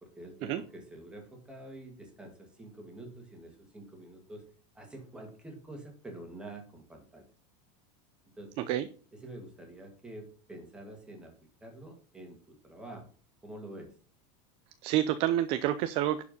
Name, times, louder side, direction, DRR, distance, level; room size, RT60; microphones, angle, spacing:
voice 1, 0.0-4.5 4.7-7.3 8.4-8.7 9.1-11.3 11.6-13.1 13.4-13.9, right 1 dB, 5° right, 2 dB, 2.0 m, -47 dB
voice 2, 14.8-16.2, right 12 dB, 35° right, 12 dB, 0.4 m, -28 dB
11.0 x 4.8 x 5.3 m, 0.42 s
supercardioid pair, 180°, 17 cm